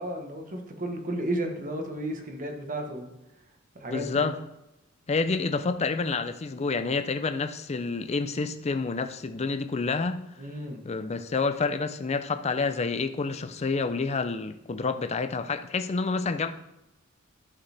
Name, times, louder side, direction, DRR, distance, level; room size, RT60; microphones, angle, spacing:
voice 1, 0.0-3.1 3.7-4.2 10.4-10.8, right 1 dB, 40° right, 4 dB, 1.2 m, -33 dB
voice 2, 3.9-4.4 5.1-10.2 10.8-16.5, left 4 dB, 30° left, 9 dB, 0.5 m, -28 dB
11.5 x 5.0 x 3.4 m, 0.92 s
head